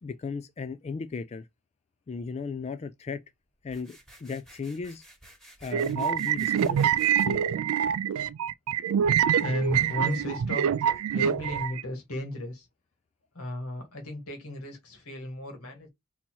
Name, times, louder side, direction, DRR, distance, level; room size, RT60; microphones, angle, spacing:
voice 1, 0.0-1.5 2.1-3.2 3.6-5.0 5.6-7.4, left 4 dB, 30° left, 0.3 m, -36 dB
sound 1, 3.6-7.3, right 1 dB, ahead, 1.4 m, -53 dB
sound 2, 5.7-11.8, right 8 dB, 70° right, 0.3 m, -25 dB
voice 2, 9.4-10.7 11.1-12.7 13.3-15.9, left 1 dB, 75° left, 2.0 m, -34 dB
4.1 x 2.8 x 4.5 m
head